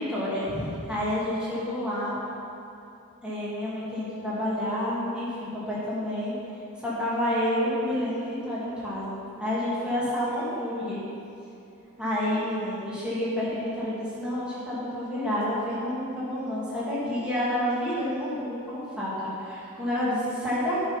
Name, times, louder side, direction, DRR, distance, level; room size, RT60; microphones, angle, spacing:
voice 1, 0.0-2.1 3.2-6.3 6.8-11.0 12.0-20.8, left 1 dB, 5° right, -10 dB, 2.4 m, -29 dB
10.5 x 6.2 x 5.7 m, 2.7 s
head